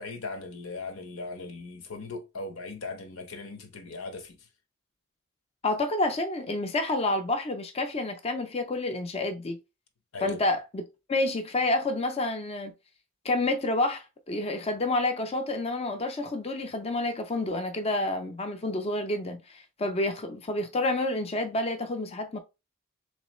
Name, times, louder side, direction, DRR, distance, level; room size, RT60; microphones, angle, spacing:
voice 1, 0.0-4.5 10.1-10.4, left 3 dB, 85° left, 0.9 m, -39 dB
voice 2, 5.6-9.6 10.2-10.8 11.1-12.7 13.2-22.4, left 2 dB, 30° left, 0.4 m, -29 dB
3.8 x 3.1 x 3.0 m
head